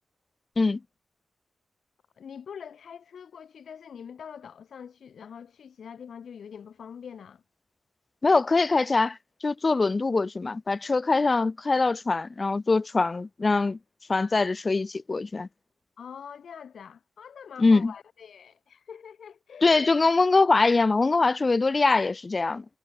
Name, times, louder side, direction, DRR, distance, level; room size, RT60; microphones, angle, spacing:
voice 1, 2.2-7.4 16.0-19.9, left 7 dB, 75° left, 6.2 m, -44 dB
voice 2, 8.2-9.2 9.4-13.8 14.1-15.5 17.6-17.9 19.6-22.6, left 3 dB, 35° left, 1.3 m, -23 dB
cardioid pair, 65°, 0 cm